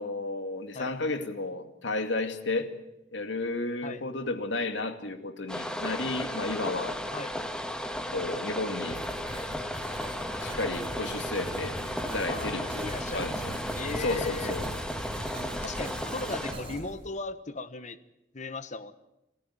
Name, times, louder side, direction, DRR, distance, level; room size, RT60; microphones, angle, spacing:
voice 1, 0.0-2.7 3.1-7.0 8.1-9.0 10.4-12.8 13.1-13.5 14.0-14.7, left 2 dB, 85° left, 8 dB, 2.2 m, -32 dB
sound 1, 5.5-16.5, equal, 5° left, 1.8 m, -35 dB
Writing, 8.9-17.1, right 1 dB, 30° right, 7.9 m, -40 dB
voice 2, 12.3-13.3 13.7-14.5 15.6-18.0 18.3-18.9, left 3 dB, 40° left, 13 dB, 1.2 m, -37 dB
27.5 x 14.0 x 9.6 m, 0.94 s
head